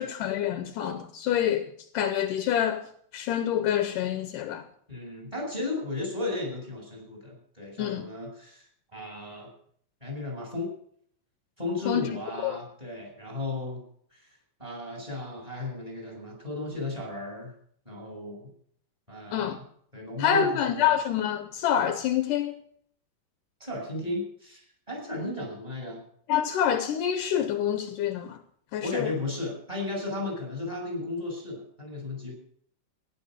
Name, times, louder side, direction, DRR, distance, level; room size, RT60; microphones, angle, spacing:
voice 1, 0.0-2.9 3.1-4.6 7.8-8.1 11.9-12.6 19.3-19.6 20.2-22.6 26.3-28.4 28.7-29.1, left 9 dB, 75° left, 2.3 m, -27 dB
voice 2, 4.9-9.5 10.0-10.7 11.6-13.8 14.1-14.3 14.6-17.5 17.9-18.5 19.1-19.6 19.9-20.9 23.6-26.1 28.8-32.3, left 2 dB, 10° right, 7.1 m, -35 dB
15.5 x 11.0 x 6.5 m
omnidirectional pair, 4.0 m